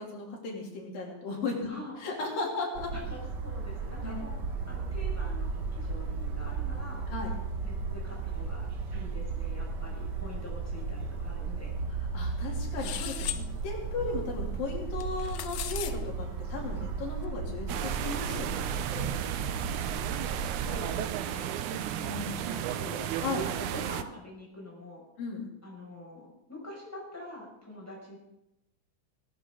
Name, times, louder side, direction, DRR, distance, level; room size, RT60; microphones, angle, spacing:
voice 1, 0.0-1.7 2.0-2.9 4.0-4.1 7.1-7.3 12.1-19.2 21.7-23.5 25.2-25.5, left 4 dB, 85° left, -2 dB, 5.0 m, -36 dB
voice 2, 1.7-2.0 2.9-4.4 4.7-7.1 7.6-11.7 20.6-21.6 22.6-23.2 23.5-25.1 25.6-28.2, left 1 dB, 5° left, -3 dB, 6.2 m, -45 dB
sound 1, 2.7-21.1, right 4 dB, 50° right, 1.3 m, -35 dB
sound 2, 12.8-13.4 15.0-15.9, left 12 dB, 70° left, 2.0 m, -36 dB
sound 3, 17.7-24.0, right 11 dB, 75° right, 2.0 m, -33 dB
19.0 x 18.0 x 3.9 m, 0.90 s
omnidirectional pair, 3.9 m